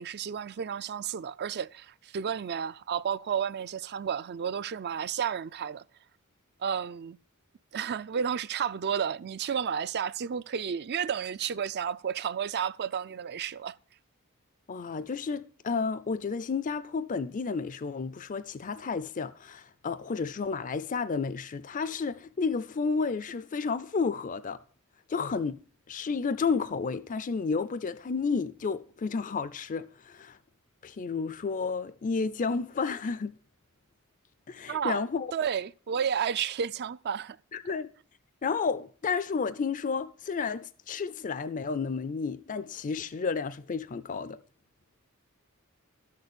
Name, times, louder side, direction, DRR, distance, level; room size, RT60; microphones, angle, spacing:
voice 1, 0.0-5.8 6.6-7.2 7.7-13.8 34.7-35.0 35.3-37.4, right 7 dB, 50° right, 0.4 m, -32 dB
voice 2, 14.7-24.6 25.1-25.6 25.9-30.4 30.8-33.4 34.5-35.3 37.5-37.9 38.4-44.4, left 5 dB, 35° left, 0.4 m, -31 dB
12.5 x 6.7 x 6.8 m
head